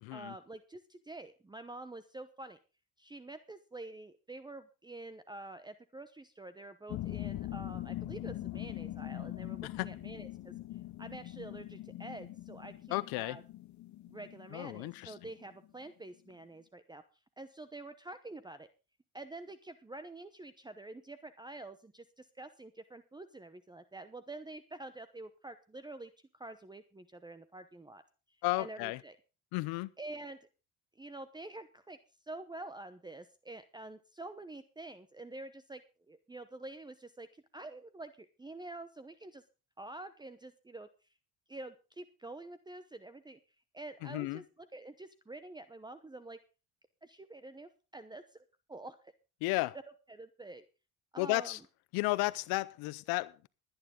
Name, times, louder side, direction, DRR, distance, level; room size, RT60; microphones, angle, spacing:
voice 1, 0.1-2.6 3.0-10.5 11.0-13.4 14.1-17.0 17.4-18.7 19.1-28.0 28.6-29.2 30.0-30.4 31.0-39.4 39.8-40.9 41.5-43.4 43.7-46.4 47.0-49.1 50.1-50.6 51.1-51.6, right 2 dB, 10° right, 0.9 m, -47 dB
sound 1, 6.9-15.9, left 14 dB, 50° left, 0.7 m, -42 dB
voice 2, 12.9-13.4 14.5-15.1 28.4-29.0 29.5-29.9 44.1-44.4 49.4-49.8 51.2-51.6 51.9-53.5, left 21 dB, 85° left, 0.6 m, -33 dB
19.5 x 9.7 x 3.8 m
cardioid pair, 100°, 36 cm